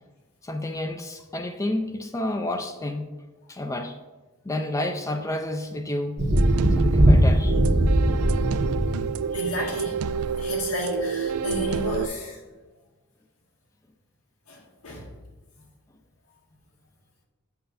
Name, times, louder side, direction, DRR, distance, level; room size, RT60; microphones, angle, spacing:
voice 1, 0.4-3.2 3.5-4.0 4.4-6.3 6.7-7.6, left 1 dB, 15° left, 6 dB, 0.3 m, -30 dB
Thunder, 6.2-10.1 11.4-11.5, equal, 50° right, 0.9 m, -20 dB
sound 1, 6.4-12.1, right 7 dB, 85° right, 0.3 m, -29 dB
voice 2, 9.3-10.0 10.4-12.4 14.5-15.1, left 1 dB, 85° left, -1 dB, 1.5 m, -32 dB
7.9 x 6.8 x 2.6 m, 1.2 s
head